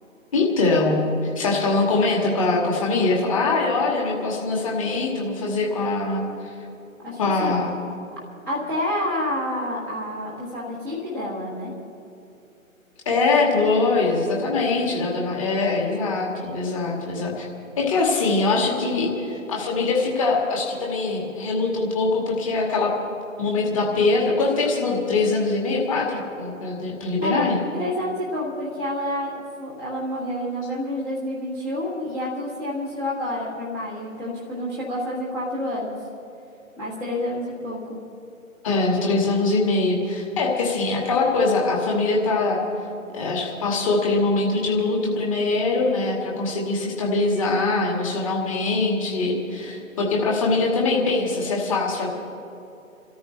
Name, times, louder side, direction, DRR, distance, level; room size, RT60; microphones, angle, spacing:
voice 1, 0.3-6.2 7.2-7.7 13.1-17.5 17.8-22.9 23.4-27.6 38.6-42.6 43.1-52.1, left 3 dB, 25° left, -2 dB, 2.4 m, -22 dB
voice 2, 7.0-7.5 8.5-11.7 27.2-27.5 27.8-36.0 36.8-38.0, left 1 dB, 10° left, -9 dB, 1.4 m, -28 dB
28.5 x 13.5 x 3.3 m, 2.8 s
figure-of-eight pair, 145°, 42 cm